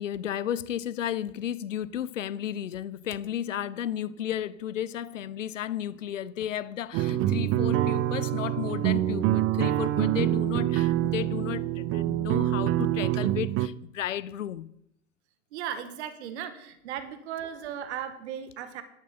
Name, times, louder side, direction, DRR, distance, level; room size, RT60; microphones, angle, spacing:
voice 1, 0.0-14.7, left 10 dB, 80° left, 0.5 m, -33 dB
sound 1, 6.9-13.7, right 13 dB, 35° right, 0.5 m, -26 dB
voice 2, 15.5-18.8, right 9 dB, 65° right, 1.2 m, -36 dB
12.5 x 11.5 x 3.9 m
figure-of-eight pair, 80°, 37 cm